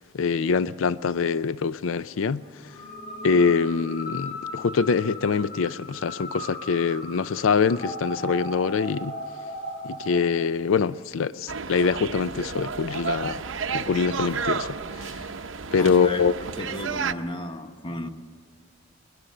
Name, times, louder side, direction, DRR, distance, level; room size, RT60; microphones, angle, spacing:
voice 1, 0.1-2.8 3.2-9.2 9.8-13.4 13.7-15.3 15.7-16.3, left 5 dB, 90° left, 0.4 m, -24 dB
sound 1, 2.7-10.2, left 1 dB, 55° left, 7.9 m, -37 dB
sound 2, 11.5-17.1, right 5 dB, 75° right, 0.8 m, -31 dB
voice 2, 15.8-16.3 16.6-18.1, left 1 dB, 25° left, 1.2 m, -34 dB
21.5 x 21.0 x 6.6 m
head